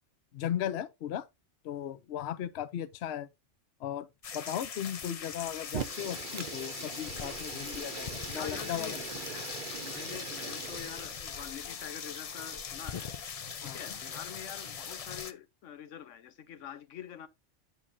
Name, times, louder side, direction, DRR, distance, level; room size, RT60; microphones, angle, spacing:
voice 1, 0.3-1.3 1.6-3.3 3.8-4.1 4.3-9.0 13.6-13.8, left 10 dB, 65° left, 0.9 m, -36 dB
sound 1, 4.2-15.3, left 6 dB, 45° left, 0.5 m, -40 dB
Fire, 5.7-11.3, right 9 dB, 55° right, 0.7 m, -42 dB
voice 2, 8.4-13.1 13.6-17.3, left 9 dB, 90° left, 1.1 m, -46 dB
8.1 x 7.5 x 2.6 m
omnidirectional pair, 1.2 m